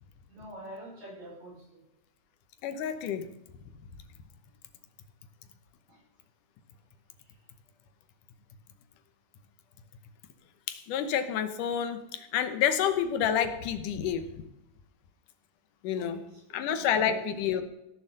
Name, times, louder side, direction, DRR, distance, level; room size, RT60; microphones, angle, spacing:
voice 1, 0.3-1.8 16.0-16.3 16.8-17.3, right 2 dB, 80° right, -4 dB, 7.5 m, -44 dB
voice 2, 2.6-3.3 10.7-14.3 15.8-16.2 16.5-17.6, left 8 dB, 75° left, 10 dB, 2.4 m, -29 dB
16.5 x 7.1 x 6.6 m, 0.89 s
omnidirectional pair, 3.9 m